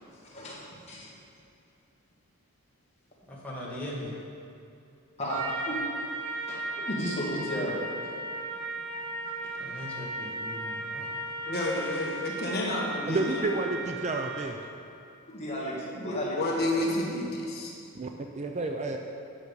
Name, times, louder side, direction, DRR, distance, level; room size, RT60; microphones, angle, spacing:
voice 1, 0.1-1.1 5.2-5.7 6.5-7.8 15.3-16.9, equal, 30° left, -5 dB, 1.9 m, -34 dB
voice 2, 3.3-4.1 9.6-11.1, left 1 dB, 5° left, -7 dB, 1.6 m, -39 dB
Trumpet, 5.3-14.6, right 2 dB, 70° right, 1.1 m, -36 dB
voice 3, 11.4-13.2 16.0-17.7, left 1 dB, 45° left, -3 dB, 1.4 m, -30 dB
voice 4, 13.1-14.6 17.9-19.0, right 2 dB, 30° right, 4 dB, 0.4 m, -30 dB
9.4 x 6.1 x 5.3 m, 2.5 s
head